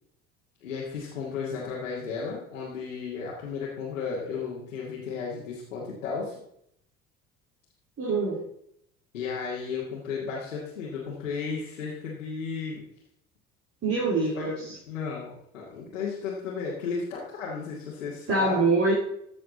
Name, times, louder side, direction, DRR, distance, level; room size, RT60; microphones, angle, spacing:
voice 1, 0.6-6.4 9.1-12.8 14.2-18.6, left 5 dB, 80° left, -6 dB, 2.1 m, -34 dB
voice 2, 8.0-8.4 13.8-14.8 18.3-18.9, right 3 dB, 35° right, -4 dB, 3.3 m, -24 dB
14.5 x 6.6 x 4.0 m, 0.72 s
figure-of-eight pair, 60°, 38 cm